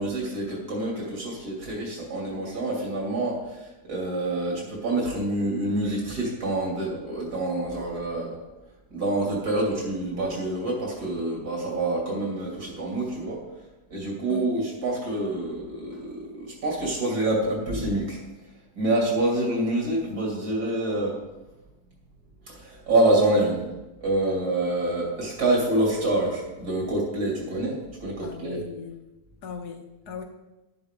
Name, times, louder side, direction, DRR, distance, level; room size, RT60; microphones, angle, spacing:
voice 1, 0.0-8.4 8.9-13.4 13.9-18.2 18.8-21.2 22.5-23.6 24.0-28.6, right 2 dB, 80° right, -3 dB, 3.3 m, -27 dB
voice 2, 28.2-29.0 29.4-30.2, left 5 dB, 85° left, 4 dB, 1.7 m, -38 dB
11.5 x 10.5 x 3.7 m, 1.0 s
omnidirectional pair, 1.7 m